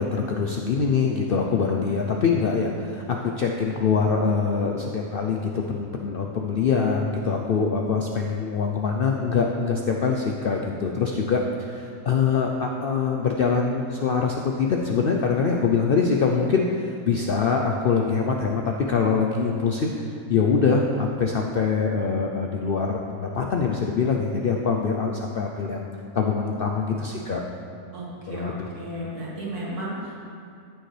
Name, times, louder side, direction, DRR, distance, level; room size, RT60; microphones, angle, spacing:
voice 1, 0.0-19.9 20.3-25.9 26.1-27.4 28.3-28.7, left 5 dB, 65° left, 1 dB, 0.5 m, -24 dB
voice 2, 27.9-30.3, equal, 90° right, -5 dB, 2.3 m, -34 dB
14.5 x 6.4 x 3.3 m, 2.5 s
omnidirectional pair, 1.6 m